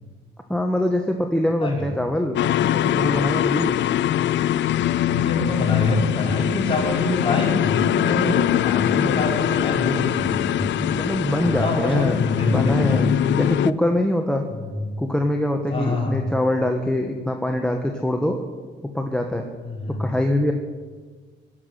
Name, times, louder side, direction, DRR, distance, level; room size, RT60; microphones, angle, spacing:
voice 1, 0.5-2.4 2.7-3.7 8.9-9.1 10.7-12.2 12.4-14.4 15.0-18.4 18.9-19.4 20.0-20.5, left 1 dB, 5° left, 4 dB, 1.4 m, -23 dB
sound 1, 2.4-13.7, left 11 dB, 70° left, 0.5 m, -22 dB
voice 2, 5.0-10.7 11.4-13.1 14.5-14.9 15.7-16.2 19.6-20.1, left 2 dB, 25° left, -2 dB, 4.8 m, -25 dB
17.5 x 7.3 x 9.9 m, 1.4 s
cardioid pair, 90°, 20 cm